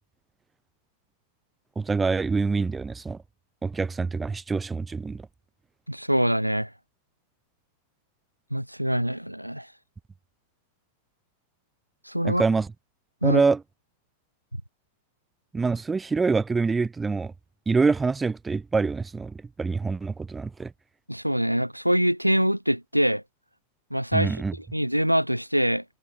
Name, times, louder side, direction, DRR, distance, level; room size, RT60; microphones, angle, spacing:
voice 1, 1.8-3.2 3.6-5.2 12.2-12.7 13.2-13.6 15.5-17.3 17.7-20.7 24.1-24.5, right 4 dB, 15° right, 4.2 m, -25 dB
voice 2, 5.9-6.7 8.5-9.7 12.1-12.4 13.2-13.4 21.1-23.2 23.9-24.4 24.7-25.8, equal, 90° right, 2.4 m, -24 dB
figure-of-eight pair, 90°, 0 cm